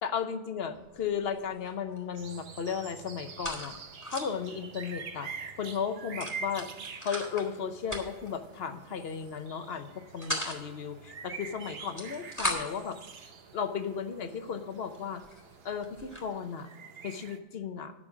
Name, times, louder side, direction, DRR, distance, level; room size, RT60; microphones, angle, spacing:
voice 1, 0.0-3.7 4.1-5.3 5.6-6.7 7.0-13.0 13.5-15.2 15.6-16.7 17.0-17.9, left 7 dB, 75° left, 9 dB, 1.1 m, -35 dB
sound 1, 0.7-1.1 1.3-2.2 2.4-4.5 4.9-5.0 5.2-5.4 6.2-7.5 7.8-8.3 9.1-9.4 9.8-10.6 11.7-12.9 13.6-13.7 14.3-14.4 14.9-15.0 15.2-16.3, equal, 15° left, 2.3 m, -37 dB
sound 2, 2.2-17.4, right 5 dB, 75° right, 1.1 m, -46 dB
11.0 x 6.6 x 6.1 m, 1.2 s
omnidirectional pair, 1.0 m